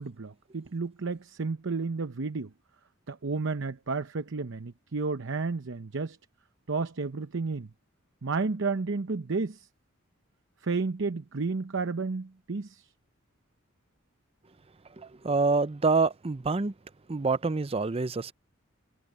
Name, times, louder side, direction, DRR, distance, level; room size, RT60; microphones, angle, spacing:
voice 1, 0.0-2.5 3.1-6.2 6.7-7.7 8.2-9.7 10.6-12.8, right 4 dB, 65° right, 0.8 m, -31 dB
voice 2, 15.2-16.7 17.1-18.3, right 4 dB, 30° right, 0.6 m, -26 dB
head